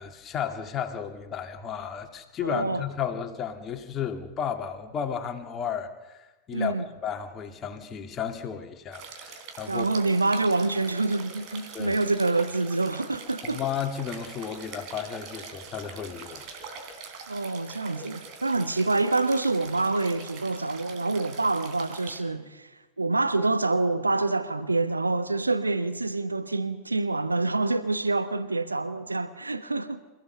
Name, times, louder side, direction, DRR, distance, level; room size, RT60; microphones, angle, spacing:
voice 1, 0.0-6.7 7.0-9.9 11.7-12.0 13.4-16.8, left 8 dB, 25° left, 2.5 m, -33 dB
voice 2, 2.4-2.8 6.5-6.8 9.7-13.6 17.3-22.7 23.0-30.0, right 3 dB, 80° right, 1.0 m, -26 dB
sound 1, 8.9-22.2, right 5 dB, 40° right, 3.6 m, -43 dB
27.5 x 15.5 x 6.9 m
figure-of-eight pair, 90°, 0 cm